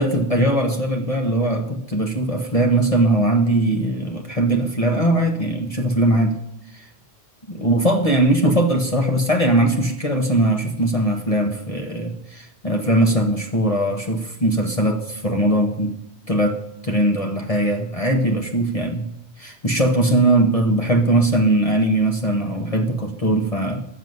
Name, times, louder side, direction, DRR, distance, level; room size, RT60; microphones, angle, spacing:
voice 1, 0.0-6.4 6.7-6.9 7.5-15.9 16.3-16.6 16.8-19.1 19.4-23.8, right 1 dB, 30° left, 2 dB, 1.3 m, -20 dB
12.0 x 7.1 x 9.4 m, 0.77 s
omnidirectional pair, 1.3 m